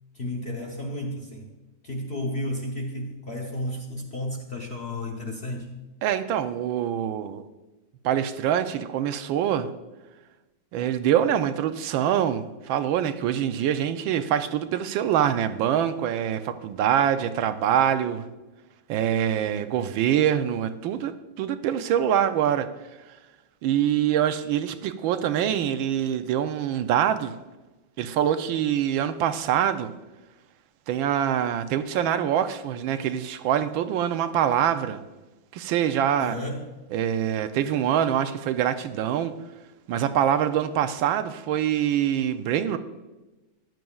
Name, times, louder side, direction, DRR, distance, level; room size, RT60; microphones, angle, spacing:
voice 1, 0.1-1.5 1.8-5.8 36.2-36.7, left 1 dB, 50° left, 0 dB, 0.8 m, -32 dB
voice 2, 6.0-7.5 8.0-9.7 10.7-18.3 18.9-22.7 23.6-27.4 28.0-29.9 30.9-35.0 35.5-36.4 36.9-39.4 39.9-42.8, right 10 dB, 85° right, 10 dB, 1.4 m, -24 dB
14.0 x 10.5 x 2.3 m, 1.1 s
omnidirectional pair, 2.2 m